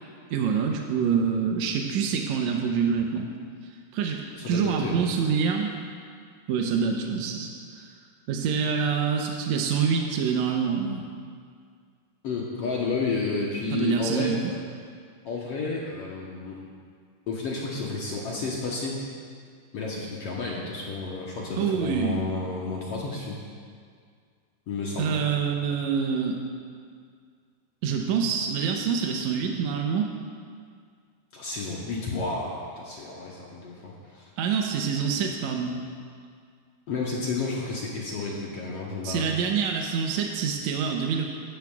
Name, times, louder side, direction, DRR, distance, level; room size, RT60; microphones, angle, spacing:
voice 1, 0.3-3.3 3.9-4.2 4.5-5.7 6.5-7.9 8.3-11.0 13.7-14.5 21.6-22.3 25.0-26.4 27.8-30.1 34.4-35.8 39.0-41.2, right 6 dB, 80° right, 2 dB, 1.7 m, -26 dB
voice 2, 4.3-5.0 12.2-14.3 15.2-16.6 17.3-19.0 19.7-23.4 24.7-25.3 31.3-34.3 36.9-39.3, left 3 dB, 70° left, -4 dB, 1.5 m, -31 dB
16.5 x 12.5 x 2.4 m, 2.1 s
omnidirectional pair, 4.1 m